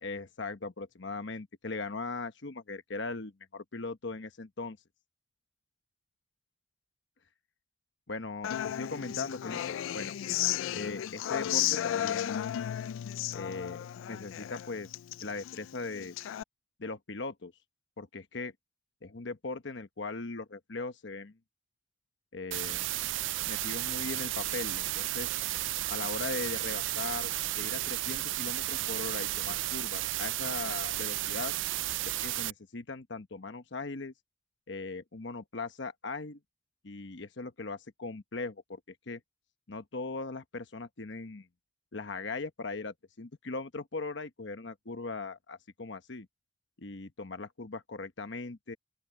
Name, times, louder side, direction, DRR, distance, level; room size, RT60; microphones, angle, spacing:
voice 1, 0.0-4.8 8.1-10.1 10.7-12.5 13.3-14.9 15.2-16.1 16.8-17.5 18.0-18.5 19.0-21.3 22.3-22.8 23.5-25.3 25.9-27.3 27.6-31.5 32.0-34.1 34.7-36.4 36.8-39.2 39.7-41.5 41.9-46.3 46.8-48.8, left 3 dB, 65° left, 1.0 m, -39 dB
Human voice / Acoustic guitar, 8.4-16.4, left 12 dB, 80° left, 0.3 m, -34 dB
sound 1, 22.5-32.5, right 16 dB, 70° right, 0.4 m, -33 dB
open air
head